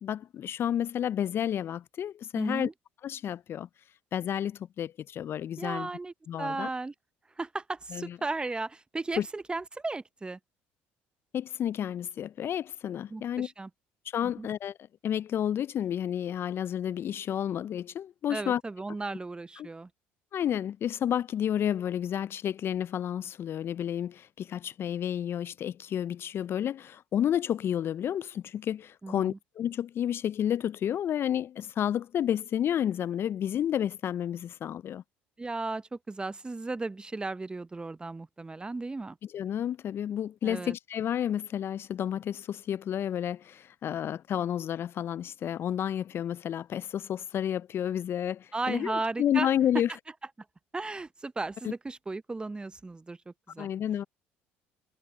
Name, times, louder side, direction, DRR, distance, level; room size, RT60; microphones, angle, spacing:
voice 1, 0.0-2.7 3.0-3.7 4.1-5.9 6.3-6.7 7.9-8.2 9.2-9.3 11.3-13.5 14.1-14.7 15.0-18.6 19.6-19.7 20.3-35.0 39.3-49.9 51.6-51.7 53.6-54.0, left 10 dB, 45° left, 0.3 m, -31 dB
voice 2, 2.4-2.7 5.6-6.9 7.4-10.4 13.1-13.7 14.2-14.5 18.3-19.9 29.0-29.4 35.4-39.2 40.4-40.7 48.5-49.5 50.7-53.7, right 3 dB, 15° right, 0.6 m, -35 dB
supercardioid pair, 75°, 5 cm